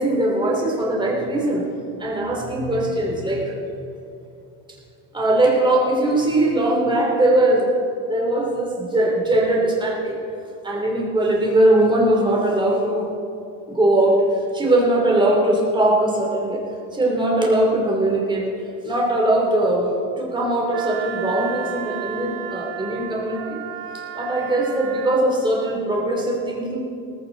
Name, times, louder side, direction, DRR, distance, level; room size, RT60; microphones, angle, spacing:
voice 1, 0.0-1.7 2.0-3.8 5.1-7.7 8.1-10.2 10.6-13.1 13.7-14.2 14.5-16.6 16.9-18.5 18.8-19.9 20.2-23.6 23.9-26.8, right 1 dB, 10° right, -2 dB, 3.0 m, -20 dB
Wind instrument woodwind instrument, 20.7-25.3, right 10 dB, 75° right, 1.2 m, -33 dB
17.5 x 15.5 x 4.0 m, 2.7 s
cardioid pair, 140°, 38 cm